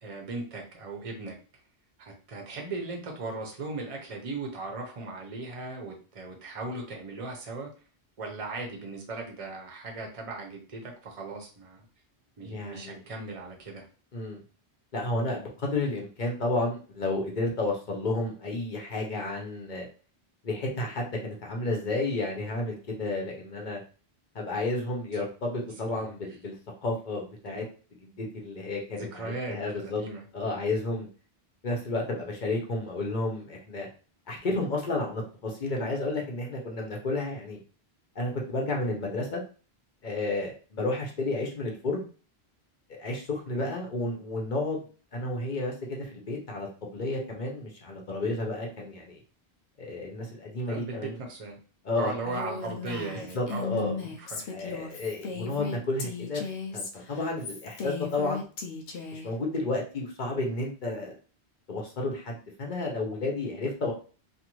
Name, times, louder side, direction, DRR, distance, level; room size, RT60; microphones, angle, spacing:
voice 1, 0.0-1.4 2.0-7.7 8.2-11.9 12.4-13.9 25.9-26.2 27.5-27.7 28.9-30.2 43.5-43.7 50.7-51.6 52.0-54.4, right 3 dB, 35° right, 1 dB, 0.7 m, -38 dB
voice 2, 12.4-13.0 14.1-14.4 14.9-19.9 20.4-23.8 24.3-26.6 26.8-27.6 28.0-30.0 30.3-31.1 31.6-33.9 34.3-37.6 38.2-39.4 40.0-42.1 42.9-44.8 45.1-49.2 49.8-51.2 51.8-52.4 53.3-53.9 54.5-56.4 56.7-58.4 59.1-61.1 61.7-63.9, left 2 dB, 50° left, -1 dB, 0.9 m, -31 dB
Female speech woman speaking, 52.3-59.3, left 4 dB, 85° left, 0.9 m, -36 dB
2.6 x 2.5 x 3.0 m, 0.37 s
omnidirectional pair, 1.1 m